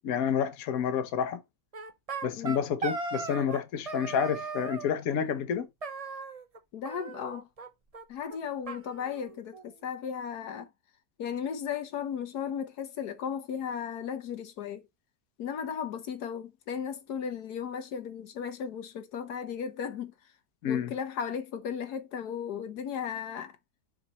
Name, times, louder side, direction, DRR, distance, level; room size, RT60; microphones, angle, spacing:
voice 1, 0.0-1.4 2.2-5.7 20.6-20.9, left 8 dB, 70° left, 1.3 m, -29 dB
sound 1, 1.7-3.6 3.9-4.9 5.8-6.6 6.8-7.7 7.9-8.0 8.3-8.4 8.7-9.7, right 4 dB, 30° right, 0.7 m, -38 dB
voice 2, 6.7-7.5 8.1-10.7 11.2-14.8 15.4-20.1 20.7-23.6, left 7 dB, 85° left, 1.5 m, -35 dB
5.9 x 5.7 x 3.0 m
omnidirectional pair, 1.6 m